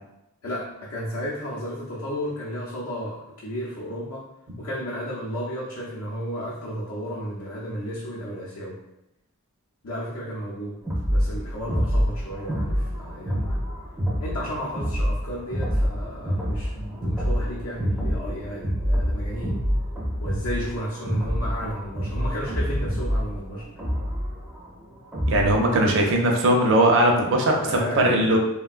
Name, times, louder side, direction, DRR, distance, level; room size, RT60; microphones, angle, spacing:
voice 1, 0.4-4.2 4.6-8.8 9.8-10.8 11.1-13.6 14.2-19.6 20.2-23.7 27.6-28.4, equal, 75° left, -6 dB, 0.6 m, -33 dB
sound 1, 10.9-25.6, equal, 5° right, 0.4 m, -27 dB
voice 2, 25.3-28.4, right 1 dB, 60° right, 1 dB, 0.5 m, -19 dB
3.2 x 2.2 x 2.4 m, 0.88 s
head